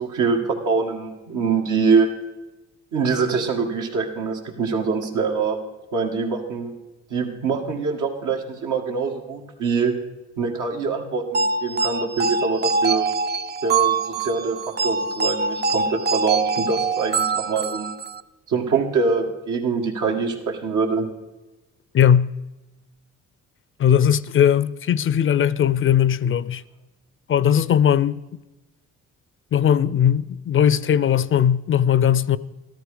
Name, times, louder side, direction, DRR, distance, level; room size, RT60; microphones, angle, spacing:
voice 1, 0.0-2.1 2.9-5.6 5.9-6.7 7.1-9.9 10.4-13.1 13.6-17.9 18.5-21.1, right 4 dB, 80° right, 2.1 m, -24 dB
sound 1, 11.3-18.2, right 4 dB, 35° right, 0.5 m, -24 dB
voice 2, 21.9-22.3 23.8-26.6 27.3-28.2 29.5-32.4, left 9 dB, 45° left, 0.5 m, -18 dB
13.5 x 13.0 x 5.0 m
cardioid pair, 90°, 30 cm